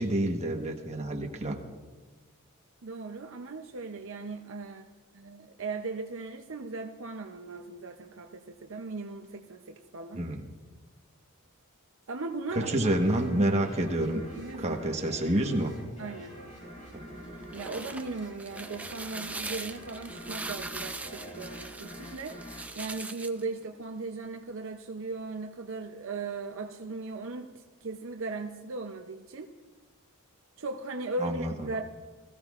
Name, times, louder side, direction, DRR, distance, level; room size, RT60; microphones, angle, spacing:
voice 1, 0.0-1.6 10.1-10.5 12.5-14.2 14.6-15.7 16.9-17.1 31.2-31.7, right 1 dB, 30° right, 2 dB, 1.2 m, -28 dB
voice 2, 2.8-4.8 5.1-10.3 12.1-12.9 14.3-15.2 16.0-16.3 17.5-22.4 22.8-29.5 30.6-31.8, right 3 dB, 60° right, 4 dB, 0.6 m, -38 dB
sound 1, 12.5-23.8, equal, 35° left, 4.2 m, -46 dB
sound 2, 17.3-23.4, right 2 dB, 5° right, 0.4 m, -41 dB
21.0 x 14.5 x 2.4 m, 1.4 s
head